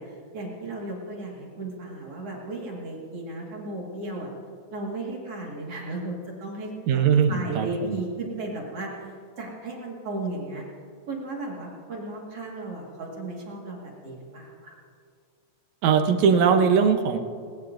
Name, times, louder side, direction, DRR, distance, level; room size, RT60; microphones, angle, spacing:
voice 1, 0.0-4.3 4.7-6.1 6.4-10.6 11.1-14.8, right 2 dB, 55° right, -2 dB, 2.7 m, -35 dB
voice 2, 6.9-8.0 15.8-17.2, right 6 dB, 80° right, 7 dB, 2.2 m, -20 dB
20.0 x 18.5 x 2.6 m, 2.2 s
omnidirectional pair, 3.3 m